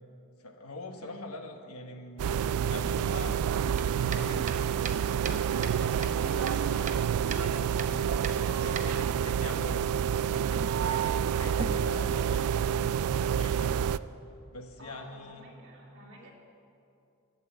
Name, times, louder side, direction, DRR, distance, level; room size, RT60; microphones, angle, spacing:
voice 1, 0.4-3.4 3.9-4.6 5.3-8.1 8.4-9.8 10.2-14.0 14.5-15.5, left 1 dB, 80° left, 5 dB, 1.3 m, -44 dB
voice 2, 0.9-1.3 11.2-11.8 14.8-16.3, equal, 55° right, -2 dB, 2.5 m, -50 dB
sound 1, 2.2-14.0, right 8 dB, 80° right, 0.3 m, -28 dB
sound 2, 2.7-12.0, right 4 dB, 35° right, 0.8 m, -42 dB
sound 3, 4.0-9.1, equal, ahead, 0.7 m, -48 dB
12.0 x 9.3 x 7.8 m, 2.6 s
head